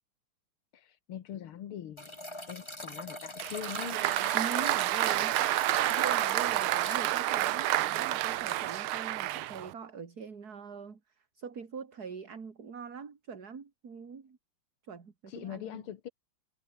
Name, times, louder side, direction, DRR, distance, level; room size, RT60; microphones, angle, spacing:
voice 1, 0.7-2.1 2.5-4.1 15.3-16.1, left 10 dB, 80° left, 2.2 m, -42 dB
sound 1, 2.0-7.0, left 1 dB, 10° left, 4.5 m, -42 dB
Applause, 3.4-9.7, right 15 dB, 80° right, 1.6 m, -29 dB
voice 2, 4.3-5.4 5.8-11.0 11.3-14.4 14.9-15.8, right 5 dB, 45° right, 2.8 m, -42 dB
omnidirectional pair, 2.3 m